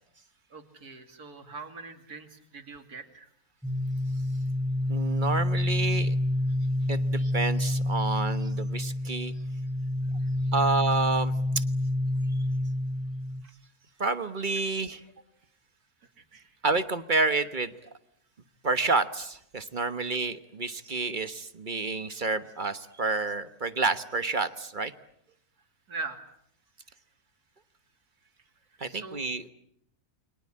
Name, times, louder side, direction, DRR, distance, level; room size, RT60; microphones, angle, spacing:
voice 1, 0.5-3.3 10.2-10.3 13.4-13.5 16.2-16.6 19.8-19.9 25.9-26.2 28.8-29.3, right 3 dB, 90° right, 6 dB, 3.0 m, -42 dB
sound 1, 3.6-13.4, left 1 dB, ahead, 0.9 m, -28 dB
voice 2, 4.9-6.1 6.9-9.3 10.5-11.6 14.0-15.0 16.6-17.7 18.6-24.9 28.8-29.5, right 3 dB, 35° right, 11 dB, 1.3 m, -29 dB
29.0 x 23.5 x 8.7 m, 0.75 s
omnidirectional pair, 1.6 m